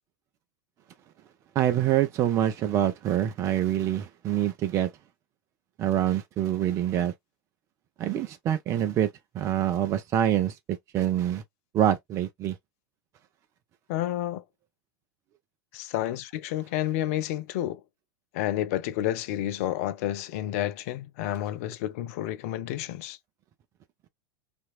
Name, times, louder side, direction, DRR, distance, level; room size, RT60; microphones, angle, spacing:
voice 1, 1.6-4.9 5.8-7.1 8.0-10.6 10.9-11.4 11.7-12.5, right 11 dB, 30° right, 0.4 m, -25 dB
voice 2, 13.9-14.4 15.7-17.8 18.3-23.2, left 13 dB, 50° left, 0.5 m, -30 dB
2.8 x 2.5 x 2.4 m
figure-of-eight pair, 90°, 10 cm